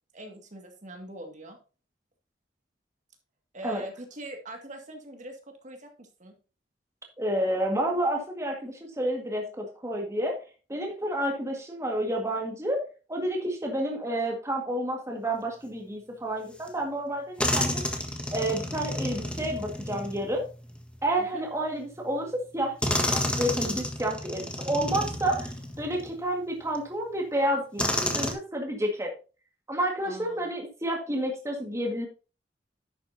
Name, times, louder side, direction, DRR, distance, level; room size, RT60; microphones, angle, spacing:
voice 1, 0.1-1.6 3.5-6.3 21.2-21.4 30.0-30.5, right 1 dB, 45° right, 4 dB, 2.1 m, -43 dB
voice 2, 7.2-10.4 10.7-12.8 13.1-17.8 18.3-20.4 21.0-25.5 25.8-29.1 29.7-32.1, right 1 dB, 15° right, 1 dB, 1.9 m, -30 dB
sound 1, 16.7-16.8 17.4-21.0 22.0-22.1 22.8-26.1 26.8-26.9 27.8-28.3, left 1 dB, 5° left, 1.5 m, -30 dB
11.0 x 8.5 x 2.8 m, 0.33 s
head